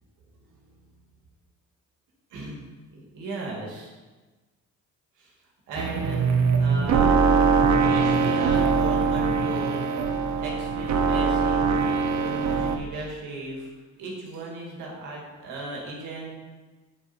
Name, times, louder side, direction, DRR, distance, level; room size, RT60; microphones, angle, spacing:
voice 1, 0.3-0.9 2.3-3.9 5.2-5.3 5.7-7.3 7.7-13.7 14.0-16.3, right 2 dB, 90° right, -2 dB, 1.9 m, -37 dB
sound 1, 5.8-12.8, right 5 dB, 65° right, 0.8 m, -22 dB
7.5 x 4.5 x 4.0 m, 1.3 s
cardioid pair, 90°, 30 cm